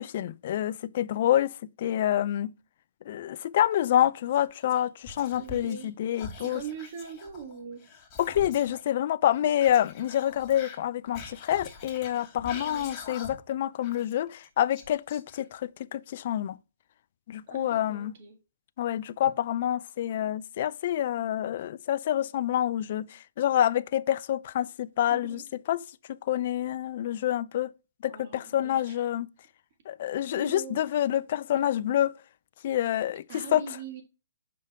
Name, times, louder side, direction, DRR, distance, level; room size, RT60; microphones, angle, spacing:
voice 1, 0.0-2.5 3.1-6.6 8.2-16.6 17.3-18.1 18.8-25.4 25.7-25.8 26.1-27.7 28.0-29.3 29.9-32.1 32.6-33.6, left 11 dB, 50° left, 0.3 m, -27 dB
Whispering, 4.3-5.9 6.2-8.8 9.6-13.6 13.8-15.6, left 4 dB, 25° left, 1.3 m, -45 dB
voice 2, 5.4-5.9 6.4-7.8 12.5-12.9 17.5-18.4 25.1-25.4 28.1-29.0 30.3-30.8 33.3-34.0, right 6 dB, 45° right, 1.6 m, -42 dB
5.7 x 5.0 x 3.5 m
hypercardioid pair, 145°, 0 cm